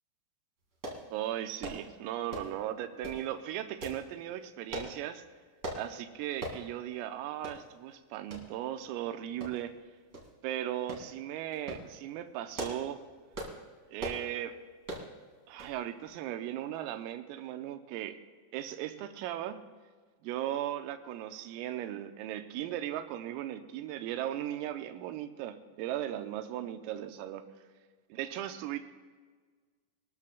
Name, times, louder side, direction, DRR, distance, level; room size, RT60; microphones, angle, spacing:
sound 1, 0.8-1.0 1.6-1.8 2.3-2.6 3.0-3.2 3.8-4.0 4.7-4.9 5.6-5.8 6.4-6.6 7.0-7.1 7.4-7.6 8.3-8.4 9.4-9.8 10.1-10.3 10.9-11.1 11.5-11.8 12.3-12.9 13.3-13.6 14.0-14.2 14.8-15.1 15.6-15.8 16.1-16.2, right 1 dB, 60° right, 0.9 m, -39 dB
voice 1, 1.1-5.2 5.7-9.8 10.4-13.0 13.9-14.6 15.5-18.2 18.5-19.6 20.2-27.4 28.1-28.8, right 12 dB, 90° right, 8 dB, 3.4 m, -37 dB
24.0 x 13.0 x 2.3 m, 1.5 s
omnidirectional pair, 5.9 m